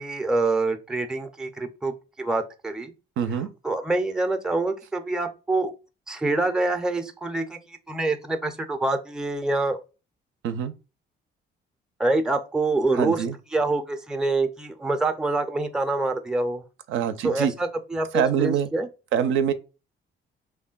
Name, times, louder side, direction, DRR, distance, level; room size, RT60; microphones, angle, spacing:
voice 1, 0.0-1.9 2.2-2.9 3.6-5.7 6.1-9.8 12.0-13.2 13.5-16.6 17.2-18.9, right 2 dB, 5° right, 0.4 m, -26 dB
voice 2, 3.2-3.5 10.4-10.7 12.9-13.4 16.9-17.5 18.1-18.7 19.1-19.5, right 8 dB, 75° right, 0.4 m, -24 dB
3.2 x 2.2 x 2.2 m
cardioid pair, 90°, 20 cm